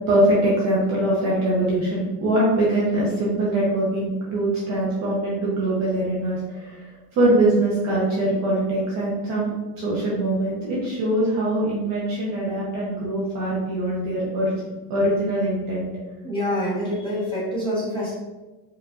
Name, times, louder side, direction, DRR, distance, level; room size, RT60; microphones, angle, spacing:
voice 1, 0.1-6.8 7.1-14.5 14.9-15.9, right 1 dB, 35° right, -6 dB, 0.7 m, -22 dB
voice 2, 16.2-18.1, equal, 10° left, -10 dB, 1.2 m, -26 dB
4.7 x 2.4 x 2.4 m, 1.2 s
cardioid pair, 180°, 46 cm